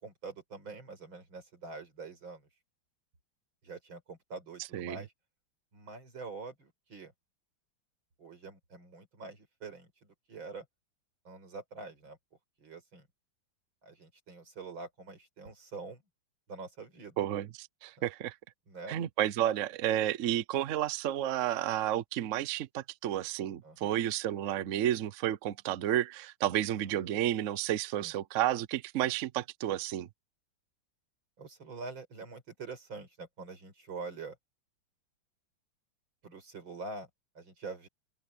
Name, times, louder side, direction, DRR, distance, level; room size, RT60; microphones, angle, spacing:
voice 1, 0.0-2.4 3.6-5.1 5.7-7.1 8.2-10.7 11.3-12.2 12.6-13.1 13.8-16.0 16.5-17.3 18.7-19.0 23.6-23.9 26.8-27.0 28.0-28.1 31.4-34.4 36.2-37.1 37.4-37.9, right 4 dB, 85° right, 5.8 m, -45 dB
voice 2, 17.2-18.3 18.9-30.1, right 12 dB, 60° right, 0.8 m, -31 dB
open air
omnidirectional pair, 2.1 m